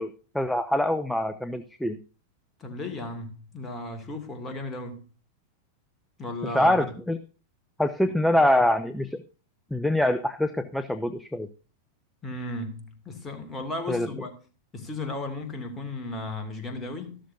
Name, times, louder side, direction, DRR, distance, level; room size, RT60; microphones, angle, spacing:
voice 1, 0.0-2.0 6.4-7.2 7.8-9.2 9.7-11.5 13.9-14.1, left 1 dB, 5° left, 0.6 m, -24 dB
voice 2, 2.6-5.0 6.2-6.8 12.2-14.3 14.7-17.2, left 2 dB, 20° left, 2.4 m, -35 dB
13.5 x 12.5 x 2.6 m
figure-of-eight pair, 90°, 0 cm